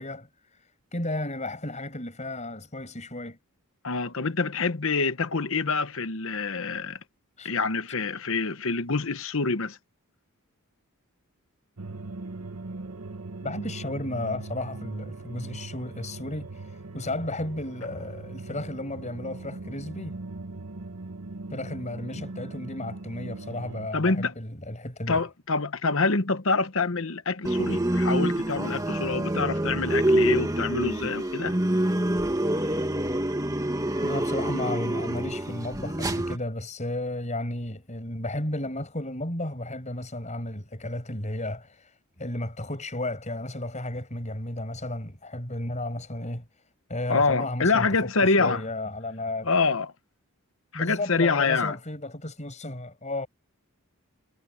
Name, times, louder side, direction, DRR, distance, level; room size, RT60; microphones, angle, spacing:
voice 1, 0.0-3.4 7.4-7.5 13.4-20.2 21.5-25.2 34.0-46.6 46.9-49.5 50.7-53.3, left 1 dB, 30° left, 6.4 m, -33 dB
voice 2, 3.8-7.0 7.4-9.8 23.9-24.3 25.1-31.5 47.1-48.6 49.4-49.9 50.7-51.8, left 4 dB, 60° left, 1.1 m, -26 dB
sound 1, 11.8-23.9, right 3 dB, 85° right, 1.3 m, -40 dB
sound 2, 27.4-36.4, right 1 dB, 15° right, 2.0 m, -26 dB
head